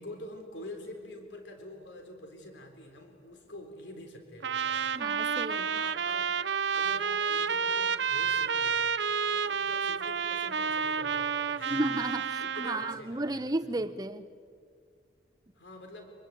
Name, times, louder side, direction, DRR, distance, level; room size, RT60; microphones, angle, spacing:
voice 1, 0.0-5.2 5.5-6.3 6.7-8.8 9.3-11.8 12.4-13.7 15.5-16.1, left 1 dB, 75° left, 5 dB, 3.9 m, -46 dB
Trumpet, 4.4-13.0, right 6 dB, 75° right, 0.7 m, -30 dB
voice 2, 4.9-5.6 11.7-14.3, right 1 dB, 20° right, 11 dB, 0.9 m, -33 dB
26.5 x 21.0 x 9.2 m, 2.2 s
head